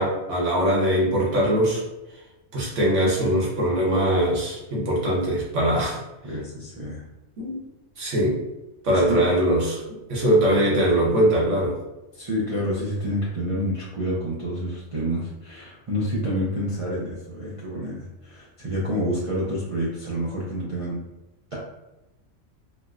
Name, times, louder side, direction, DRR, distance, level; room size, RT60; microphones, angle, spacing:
voice 1, 0.0-1.8 2.5-6.0 7.4-7.6 8.0-8.4 8.8-11.8, right 1 dB, 80° right, -3 dB, 1.3 m, -22 dB
voice 2, 6.2-7.0 9.0-9.2 12.1-21.0 21.5-21.6, equal, 40° right, -7 dB, 0.5 m, -28 dB
4.0 x 2.2 x 2.4 m, 0.97 s
omnidirectional pair, 1.2 m